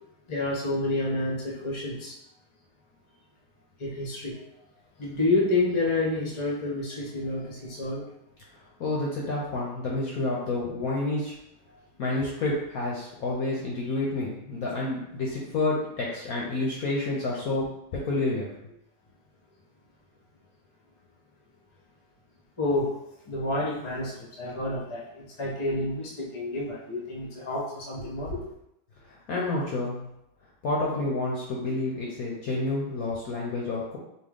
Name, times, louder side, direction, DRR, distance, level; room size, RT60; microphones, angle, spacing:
voice 1, 0.3-2.2 3.8-4.5 5.0-8.1 22.6-23.0 23.3-28.4, left 2 dB, 35° left, -4 dB, 0.4 m, -29 dB
voice 2, 8.8-11.3 12.0-17.7 17.9-18.7 29.0-30.1 30.6-34.0, left 2 dB, 65° left, -3 dB, 0.9 m, -29 dB
4.4 x 2.9 x 3.6 m, 0.82 s
omnidirectional pair, 2.3 m